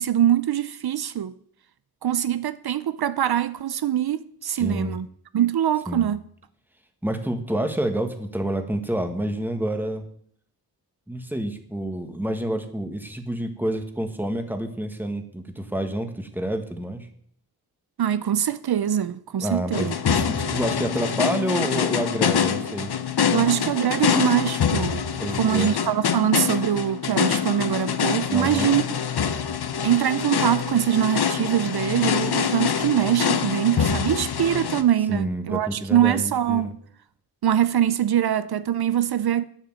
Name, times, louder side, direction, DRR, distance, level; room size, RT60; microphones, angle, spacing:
voice 1, 0.0-1.3 2.0-5.1 5.3-6.2 18.0-19.9 23.3-25.1 25.4-28.8 29.8-36.7 37.4-39.4, right 10 dB, 75° right, 0.6 m, -23 dB
voice 2, 4.5-5.0 5.9-6.1 7.0-10.0 11.1-17.1 19.4-22.9 25.2-25.7 28.3-28.8 35.1-36.7, right 1 dB, 5° right, 1.4 m, -28 dB
sound 1, 19.7-34.8, left 7 dB, 80° left, 0.8 m, -25 dB
9.5 x 7.5 x 7.5 m
wide cardioid pair, 110°, 38 cm